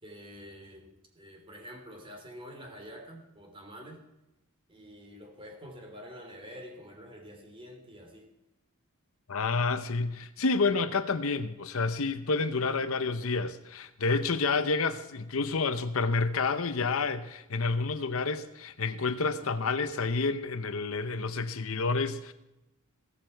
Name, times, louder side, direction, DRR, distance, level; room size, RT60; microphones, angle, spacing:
voice 1, 0.0-4.0 4.7-8.3, equal, 25° right, 3.3 m, -47 dB
voice 2, 9.3-22.3, left 4 dB, 65° left, 0.8 m, -29 dB
16.0 x 14.0 x 4.6 m
head